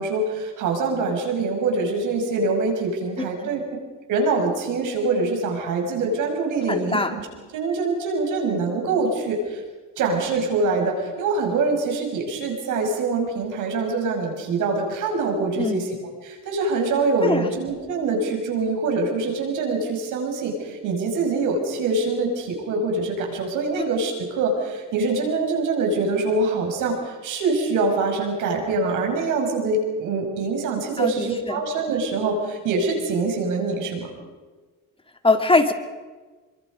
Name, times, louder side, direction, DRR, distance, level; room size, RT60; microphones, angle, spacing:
voice 1, 0.0-3.6 4.1-7.2 7.5-9.6 10.0-15.9 16.2-34.1, right 3 dB, 85° right, 2 dB, 6.3 m, -24 dB
voice 2, 6.7-7.1 15.6-15.8 17.2-17.5 23.8-23.9 31.0-31.6 35.2-35.7, left 2 dB, 20° left, 6 dB, 2.5 m, -22 dB
28.0 x 24.5 x 5.3 m, 1.3 s
cardioid pair, 90°, 30 cm